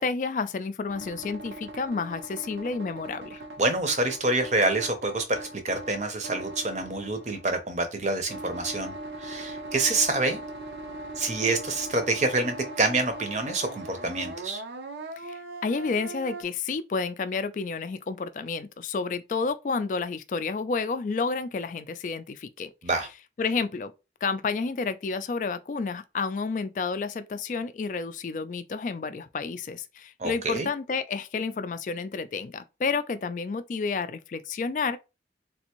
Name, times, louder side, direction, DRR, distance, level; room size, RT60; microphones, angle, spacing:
voice 1, 0.0-3.4 15.2-22.7 23.4-23.9 24.2-35.0, left 4 dB, 45° left, 0.3 m, -30 dB
sound 1, 0.9-7.8 8.3-16.4, right 2 dB, 85° right, 0.6 m, -40 dB
voice 2, 3.6-10.4 11.2-14.6 22.8-23.1 30.2-30.7, right 2 dB, 40° right, 0.7 m, -27 dB
3.4 x 2.5 x 2.9 m
head